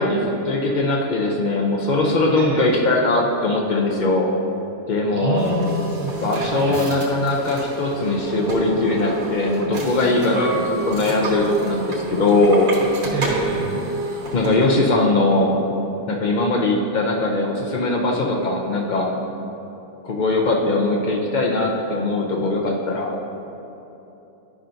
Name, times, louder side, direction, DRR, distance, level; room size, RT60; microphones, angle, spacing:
voice 1, 0.0-4.3 4.9-5.7 6.2-12.7 14.3-15.5 16.1-19.1 20.0-23.2, left 2 dB, 75° left, 0 dB, 0.4 m, -20 dB
voice 2, 2.4-2.7 5.1-6.9 10.3-10.5 13.1-13.7, right 1 dB, 30° right, -4 dB, 0.6 m, -27 dB
sound 1, 5.4-14.8, right 3 dB, 70° right, 1.6 m, -29 dB
11.5 x 5.6 x 2.6 m, 3.0 s
omnidirectional pair, 1.6 m